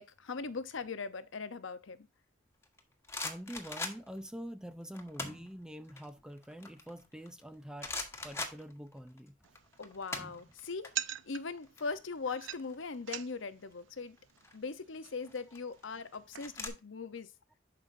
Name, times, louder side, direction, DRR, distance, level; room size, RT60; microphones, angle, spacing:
voice 1, 0.0-2.1 9.8-14.2 14.5-17.3, left 4 dB, 90° left, 0.8 m, -40 dB
sound 1, 2.6-4.3 4.9-5.5 5.9-7.4 7.8-9.2 9.4-10.9 11.2-11.4 11.6-13.2 14.2-14.6 15.2-16.7, left 3 dB, 15° left, 1.3 m, -41 dB
voice 2, 3.2-8.0 8.2-9.3, equal, 5° right, 0.4 m, -45 dB
sound 2, 9.4-16.7, right 11 dB, 80° right, 0.5 m, -46 dB
10.5 x 5.4 x 2.6 m
head